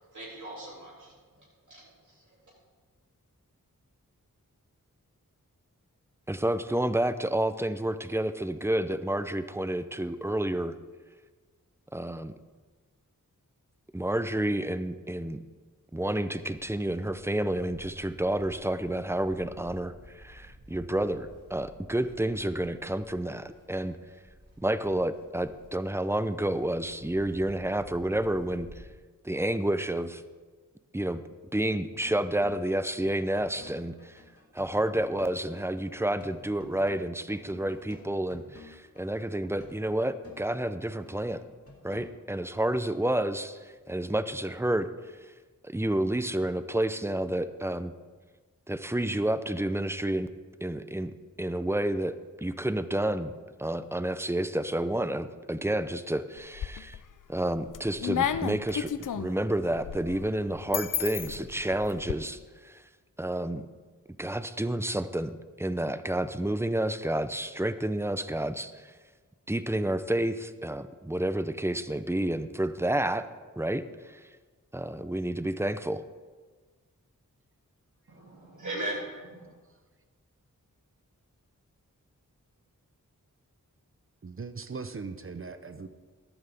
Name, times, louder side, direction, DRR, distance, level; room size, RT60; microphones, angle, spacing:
voice 1, 0.1-1.1 1.7-2.4 78.1-79.5, right 1 dB, 60° right, -6 dB, 2.8 m, -39 dB
voice 2, 6.3-10.7 11.9-12.3 13.9-15.4 15.9-24.0 24.6-28.8 29.2-30.2 30.9-31.2 31.5-34.2 34.5-41.4 41.8-44.9 45.6-47.9 48.7-50.3 50.6-53.3 53.6-57.0 57.3-62.8 63.2-63.6 64.2-68.9 69.5-73.2 73.6-74.2 74.7-76.0, right 1 dB, 10° right, 12 dB, 0.5 m, -30 dB
Livestock farm animals working animals, 16.4-28.8, equal, 85° right, 3.9 m, -53 dB
sound 1, 32.0-42.9, left 2 dB, 45° left, 2.0 m, -53 dB
sound 2, 56.4-57.1 57.5-62.1, left 9 dB, 65° left, 0.5 m, -33 dB
voice 3, 84.2-85.9, right 4 dB, 40° right, 9 dB, 0.7 m, -39 dB
14.0 x 11.5 x 3.5 m, 1.4 s
wide cardioid pair, 65°, 33 cm